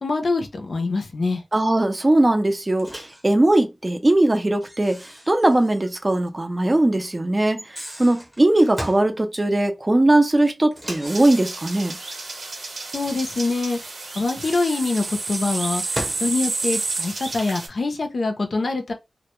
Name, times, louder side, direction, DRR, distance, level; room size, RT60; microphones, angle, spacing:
voice 1, 0.0-1.4 12.9-13.8 14.1-15.8 16.2-18.9, left 3 dB, 60° left, 0.5 m, -24 dB
voice 2, 1.5-5.0 5.3-7.6 8.0-12.0, right 1 dB, 25° right, 0.4 m, -19 dB
Microwave oven, 2.8-3.2 4.6-6.0 6.3-6.4 7.5-9.1 10.7-12.1 14.1-16.3, equal, 5° right, 0.8 m, -37 dB
sound 1, 11.1-17.7, right 3 dB, 80° right, 0.7 m, -30 dB
2.1 x 2.1 x 2.9 m
wide cardioid pair, 110°, 0 cm